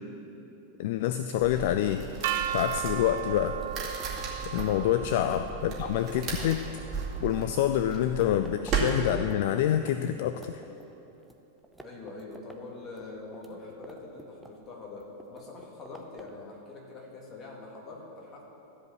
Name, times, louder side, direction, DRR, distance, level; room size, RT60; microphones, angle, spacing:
voice 1, 0.8-2.1 2.5-3.6 4.5-6.6 7.2-10.6, left 11 dB, 50° left, 9 dB, 0.3 m, -27 dB
sound 1, 1.4-8.8, right 6 dB, 35° right, 2.4 m, -36 dB
sound 2, 2.2-8.2, right 10 dB, 55° right, 0.4 m, -37 dB
sound 3, 3.1-9.9 10.3-11.4 11.6-12.6 12.9-14.7 15.0-16.4, right 1 dB, 5° right, 0.7 m, -50 dB
voice 2, 11.8-18.4, left 3 dB, 30° left, -2 dB, 2.3 m, -44 dB
14.0 x 5.2 x 7.1 m, 3.0 s
figure-of-eight pair, 90°, 0 cm